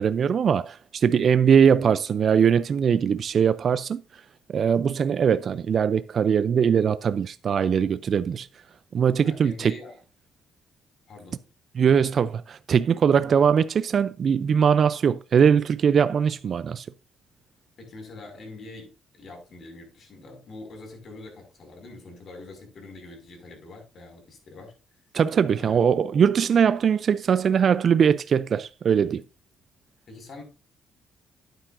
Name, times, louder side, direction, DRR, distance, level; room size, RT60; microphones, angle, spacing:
voice 1, 0.0-4.2 4.5-8.5 8.9-9.7 11.8-16.9 25.1-29.2, right 7 dB, 55° right, 0.4 m, -21 dB
voice 2, 9.2-10.0 11.1-11.5 11.9-12.0 13.1-13.4 17.8-18.9 19.2-24.7 25.6-25.8 30.1-30.4, left 2 dB, 55° left, 5.5 m, -44 dB
11.5 x 9.1 x 2.6 m
cardioid pair, 90°, 0 cm